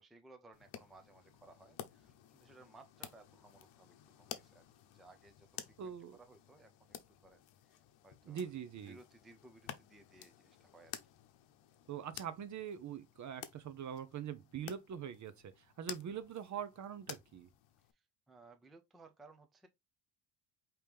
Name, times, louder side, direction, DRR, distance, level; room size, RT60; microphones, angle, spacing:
voice 1, 0.0-7.0 7.2-8.5 8.8-11.0 17.8-19.7, right 2 dB, ahead, 0.4 m, -61 dB
sound 1, 0.5-17.9, left 11 dB, 75° left, 0.9 m, -53 dB
voice 2, 5.8-6.2 8.3-9.0 11.9-17.5, right 8 dB, 40° right, 0.6 m, -43 dB
5.1 x 3.0 x 3.2 m
cardioid pair, 130°, 47 cm